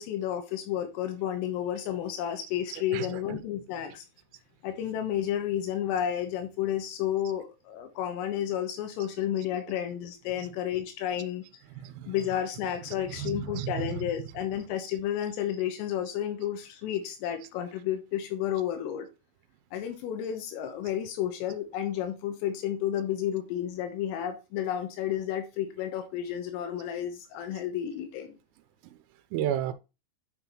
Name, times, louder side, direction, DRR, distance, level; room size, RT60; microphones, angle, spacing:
voice 1, 0.0-4.1 4.6-11.5 12.1-19.1 19.7-28.4, left 10 dB, 80° left, 3.5 m, -31 dB
voice 2, 2.7-3.4 10.4-10.5 13.1-14.0 29.3-29.7, right 10 dB, 85° right, 3.3 m, -32 dB
9.2 x 5.7 x 3.0 m
omnidirectional pair, 5.9 m